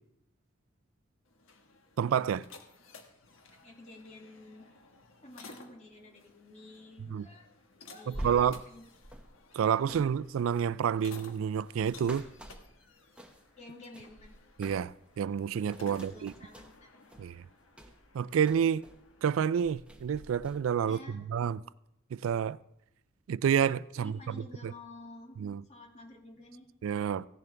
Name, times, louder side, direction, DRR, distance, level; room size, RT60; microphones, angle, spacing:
sound 1, 1.2-19.8, left 3 dB, 80° left, 1.5 m, -56 dB
voice 1, 2.0-2.5 7.1-7.3 8.1-8.6 9.5-12.3 14.6-16.3 17.2-17.5 18.1-18.8 19.2-21.6 22.1-22.6 23.3-24.7 25.4-25.6 26.8-27.3, right 8 dB, 80° right, 0.3 m, -29 dB
voice 2, 3.6-4.7 5.2-7.5 7.8-8.9 9.9-10.0 13.6-14.3 15.9-16.9 20.9-21.2 24.0-25.4 25.7-26.7, left 2 dB, 35° left, 2.3 m, -51 dB
sound 2, 8.1-13.6 13.9-15.1 15.4-19.1 19.4-20.6, right 1 dB, 5° right, 1.1 m, -47 dB
16.0 x 10.5 x 3.4 m
head